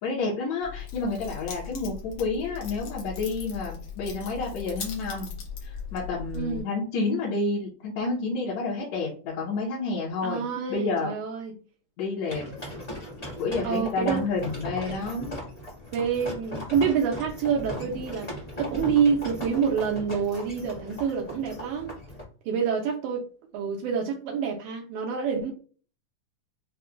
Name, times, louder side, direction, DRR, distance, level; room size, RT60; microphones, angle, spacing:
voice 1, 0.0-5.3 5.6-10.4 10.7-11.1 12.0-12.5 13.4-15.4, left 3 dB, 70° left, 1.9 m, -29 dB
Keys jangling, 0.6-6.6, left 7 dB, 90° left, 1.2 m, -39 dB
voice 2, 6.4-6.7 10.2-11.5 13.6-14.2 15.9-18.3 18.6-21.9 22.5-23.3 23.5-25.5, right 6 dB, 80° right, 2.1 m, -27 dB
sound 1, 12.3-22.2, left 1 dB, 25° left, 0.8 m, -38 dB
5.7 x 2.3 x 2.3 m
omnidirectional pair, 3.7 m